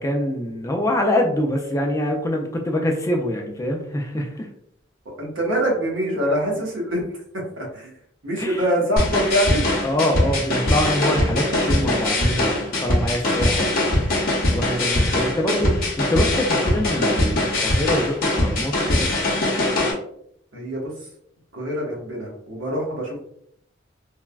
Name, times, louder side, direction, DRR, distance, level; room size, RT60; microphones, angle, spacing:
voice 1, 0.0-4.5 8.4-8.6 9.8-14.0 14.5-19.1, left 1 dB, 15° left, 2 dB, 0.4 m, -25 dB
voice 2, 5.0-7.0 7.3-7.9 8.2-9.7 15.2-15.4 20.5-20.9 21.5-23.2, equal, 80° right, -3 dB, 1.1 m, -24 dB
sound 1, 9.0-19.9, left 1 dB, 50° left, 0.7 m, -21 dB
3.3 x 2.1 x 2.3 m, 0.69 s
head